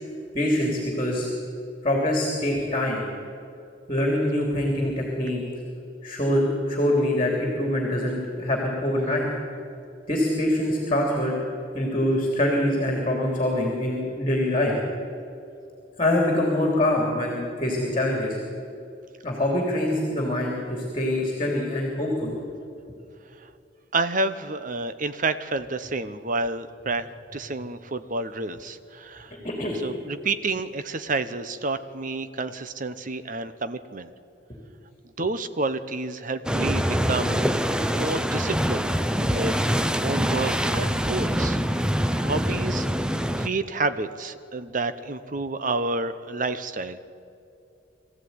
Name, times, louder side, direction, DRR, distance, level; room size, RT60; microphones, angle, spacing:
voice 1, 0.3-1.3 1.8-3.0 3.9-5.4 6.0-9.3 10.1-11.3 11.7-14.7 16.0-18.4 19.2-22.3 29.4-29.8, left 1 dB, 30° left, 0 dB, 3.2 m, -24 dB
voice 2, 23.9-29.3 29.8-34.1 35.2-37.4 37.9-38.9 39.2-39.5 39.8-41.6 41.9-42.9 43.4-47.0, right 3 dB, 45° right, 11 dB, 0.9 m, -29 dB
sound 1, 36.5-43.5, equal, 5° right, 0.6 m, -24 dB
22.5 x 15.0 x 9.6 m, 2.6 s
head